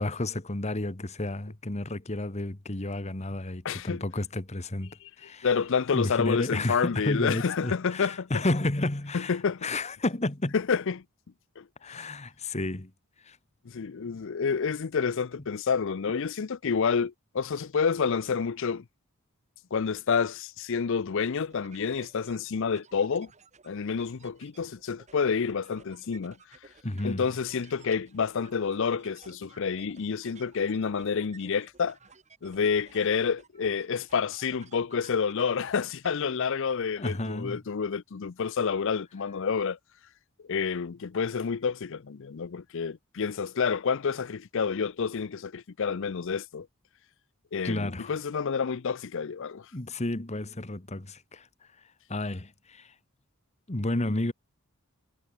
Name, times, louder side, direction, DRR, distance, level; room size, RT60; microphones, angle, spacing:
voice 1, 0.0-5.5 5.9-10.5 11.8-12.9 13.2-13.4 26.8-27.3 37.0-37.6 47.6-48.1 49.7-51.5 52.1-52.9 53.7-54.3, left 2 dB, 30° left, 1.5 m, -31 dB
voice 2, 3.6-4.0 5.4-8.3 9.1-9.7 10.5-11.0 11.6-11.7 11.9-12.0 13.7-18.8 19.7-23.3 23.6-26.4 27.0-32.0 32.4-39.8 40.5-46.7 47.5-49.7, left 6 dB, 60° left, 0.5 m, -29 dB
sound 1, 21.5-36.2, right 5 dB, 35° right, 3.3 m, -56 dB
head